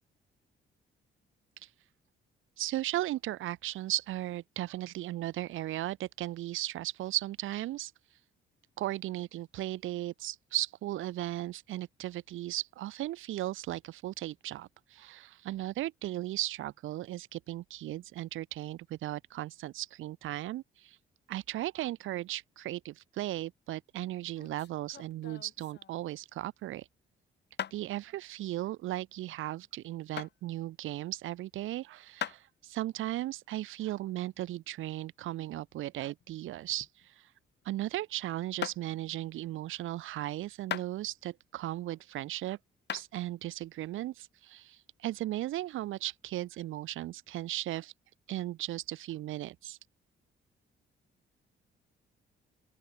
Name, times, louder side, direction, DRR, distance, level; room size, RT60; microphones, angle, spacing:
voice 1, 2.6-7.9 8.8-21.0 21.3-26.9 27.7-37.1 37.7-42.6 42.9-47.9 48.3-49.8, right 15 dB, 85° right, 2.1 m, -36 dB
sound 1, 24.2-26.2 27.6-27.8 30.2-30.3 32.2-32.5 35.7-37.1 37.4-37.7 38.6-38.8 40.7-41.3 41.9-42.4 42.9-43.1, left 9 dB, 60° left, 2.7 m, -40 dB
open air
cardioid pair, 90°, 20 cm